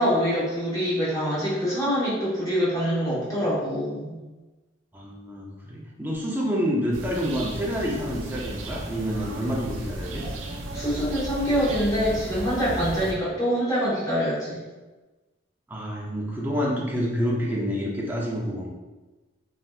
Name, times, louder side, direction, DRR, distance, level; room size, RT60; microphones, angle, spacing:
voice 1, 0.0-4.1 10.7-14.6, equal, 15° left, -9 dB, 1.0 m, -25 dB
voice 2, 4.9-10.2 15.7-18.7, equal, 10° right, -3 dB, 0.4 m, -28 dB
sound 1, 6.9-13.1, right 1 dB, 70° right, 0.4 m, -35 dB
3.2 x 2.6 x 2.3 m, 1.2 s
head